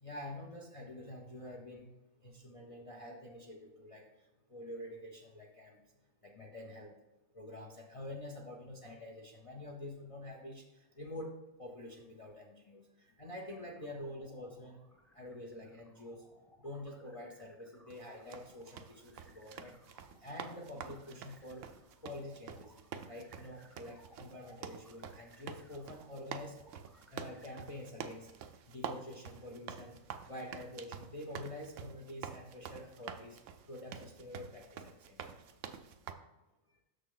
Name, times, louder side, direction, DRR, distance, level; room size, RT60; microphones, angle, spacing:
voice 1, 0.0-1.9 2.2-4.1 4.5-5.8 6.2-7.0 7.3-11.3 11.6-14.8 15.1-16.2 16.6-21.7 22.0-22.7 23.1-26.5 27.1-28.3 28.7-30.0 30.3-33.4 33.7-35.4, left 1 dB, 30° left, 0 dB, 0.8 m, -47 dB
sound 1, 13.4-27.8, equal, ahead, 0.3 m, -65 dB
sound 2, 17.9-36.1, right 7 dB, 75° right, 0.9 m, -48 dB
6.7 x 6.5 x 3.9 m, 1.0 s
omnidirectional pair, 1.3 m